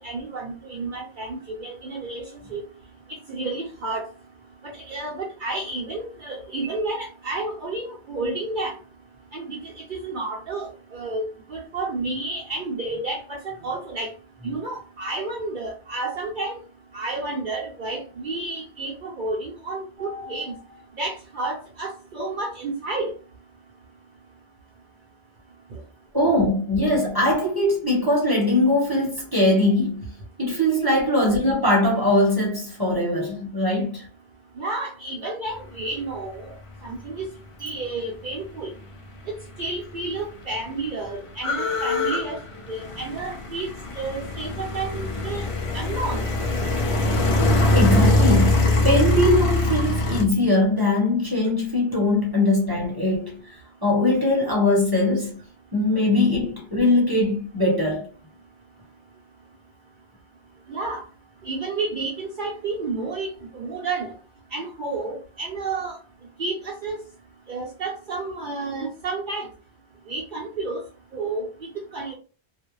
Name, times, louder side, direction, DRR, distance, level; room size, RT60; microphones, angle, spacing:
voice 1, 0.0-2.2 2.5-2.6 3.3-4.1 4.6-8.8 9.3-14.1 14.4-16.6 16.9-20.5 21.0-23.1 34.6-36.5 36.8-37.3 37.6-38.7 39.6-42.4 42.7-43.7 43.9-45.5 45.7-46.2 60.7-61.0 61.4-63.3 63.5-64.1 64.5-66.0 66.4-67.0 67.5-69.5 70.1-70.8 71.1-72.1, right 3 dB, 55° right, 0.7 m, -31 dB
voice 2, 20.0-20.4 26.1-30.0 30.4-34.1 47.7-55.4 55.7-58.0, left 1 dB, 25° right, 0.8 m, -21 dB
sound 1, 39.6-39.7 39.9-50.2, left 2 dB, 50° left, 0.4 m, -22 dB
2.3 x 2.1 x 3.0 m
omnidirectional pair, 1.1 m